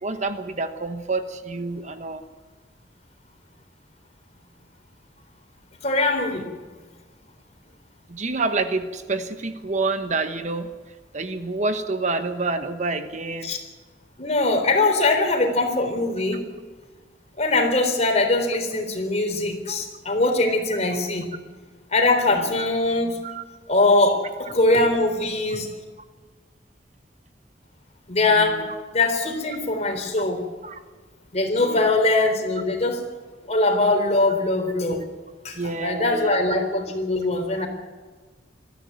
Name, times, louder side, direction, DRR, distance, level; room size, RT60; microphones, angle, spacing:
voice 1, 0.0-2.2 8.1-10.7 11.1-13.5 19.7-19.8 22.3-22.5 23.2-23.4 28.3-28.7 30.6-30.8 31.6-31.8 35.5-36.4 37.6-37.7, right 3 dB, 40° right, 9 dB, 1.2 m, -28 dB
voice 2, 5.8-6.5 13.4-13.6 14.2-16.4 17.4-21.3 21.9-23.2 23.7-25.7 28.1-28.6 28.9-30.5 31.3-33.0 33.5-35.0 35.4-37.7, left 2 dB, 40° left, 5 dB, 3.8 m, -22 dB
21.0 x 14.0 x 9.5 m, 1.4 s
head